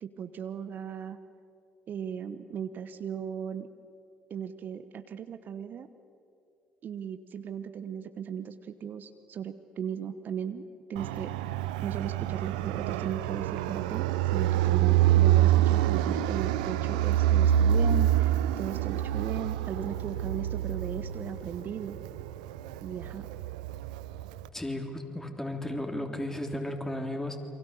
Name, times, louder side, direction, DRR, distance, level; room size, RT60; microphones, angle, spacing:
voice 1, 0.0-1.2 1.9-3.7 4.3-5.9 6.8-11.3 11.8-22.0 22.8-23.3, right 8 dB, 50° right, 10 dB, 1.0 m, -37 dB
Fixed-wing aircraft airplane, 11.0-24.5, right 12 dB, 75° right, 0.7 m, -27 dB
voice 2, 24.5-27.4, left 1 dB, 10° left, 4 dB, 3.5 m, -34 dB
29.0 x 24.0 x 7.0 m, 2.6 s
figure-of-eight pair, 45°, 4 cm